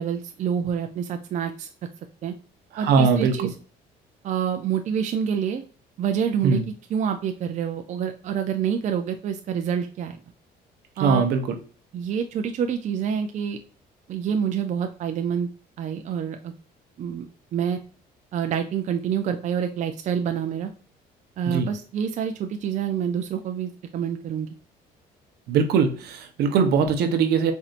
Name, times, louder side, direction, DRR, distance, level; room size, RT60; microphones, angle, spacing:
voice 1, 0.0-1.7 2.2-2.3 2.8-3.5 4.2-5.6 6.0-10.2 11.0-11.2 11.9-13.6 14.1-15.5 15.8-16.5 17.0-17.8 18.3-20.7 21.4-24.5, right 8 dB, 45° right, 6 dB, 0.4 m, -27 dB
voice 2, 2.7-3.3 6.4-6.6 11.0-11.4 21.5-21.7 25.5-27.5, right 5 dB, 75° right, 6 dB, 0.8 m, -21 dB
4.3 x 2.7 x 2.4 m, 0.40 s
cardioid pair, 110°, 17 cm